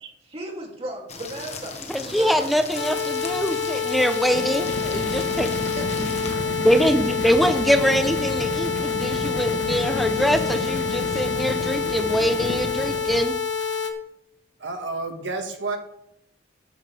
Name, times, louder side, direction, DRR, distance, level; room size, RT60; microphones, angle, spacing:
voice 1, 0.3-1.8 2.0-2.5 5.8-6.2 6.6-6.7, right 1 dB, 30° right, -1 dB, 2.8 m, -35 dB
sound 1, 1.1-6.3, left 4 dB, 35° left, 1.4 m, -38 dB
voice 2, 1.9-5.6 6.0-6.2 6.6-13.3, equal, ahead, 7 dB, 0.7 m, -23 dB
sound 2, 2.7-13.9, left 5 dB, 90° left, 1.5 m, -27 dB
sound 3, 4.2-13.3, left 1 dB, 65° left, 1.4 m, -32 dB
voice 3, 14.6-15.8, right 3 dB, 80° right, 4 dB, 1.8 m, -30 dB
12.5 x 10.0 x 3.5 m, 0.79 s
head